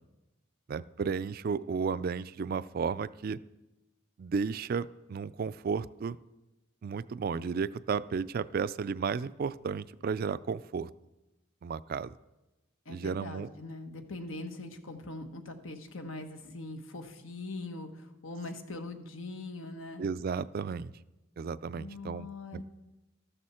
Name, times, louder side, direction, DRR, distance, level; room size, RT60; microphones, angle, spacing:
voice 1, 0.7-3.4 4.2-6.2 6.8-10.9 11.6-12.1 12.9-13.5 20.0-20.9 21.4-22.3 22.5-22.6, right 5 dB, 50° right, 16 dB, 0.3 m, -33 dB
voice 2, 12.8-20.0 21.8-22.6, left 2 dB, 85° left, 6 dB, 1.3 m, -42 dB
13.5 x 12.5 x 4.3 m, 1.0 s
head